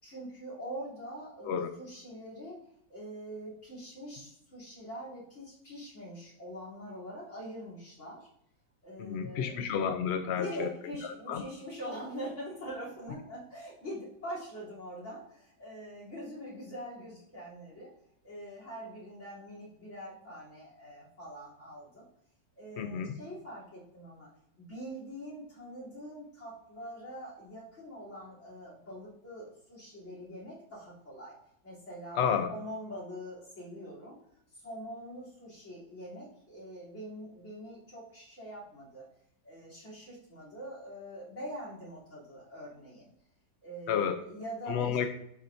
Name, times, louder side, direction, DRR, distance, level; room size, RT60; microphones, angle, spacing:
voice 1, 0.0-2.6 2.9-8.3 8.8-9.6 10.3-17.9 18.2-22.1 22.6-24.3 24.6-31.3 31.6-34.2 34.5-39.0 39.4-43.1 43.6-45.0, equal, 40° left, -6 dB, 3.4 m, -44 dB
voice 2, 9.0-10.7 11.3-11.4 22.8-23.2 32.2-32.5 43.9-44.2 44.7-45.1, left 7 dB, 70° left, 7 dB, 0.6 m, -30 dB
11.0 x 5.8 x 2.6 m, 0.74 s
omnidirectional pair, 1.9 m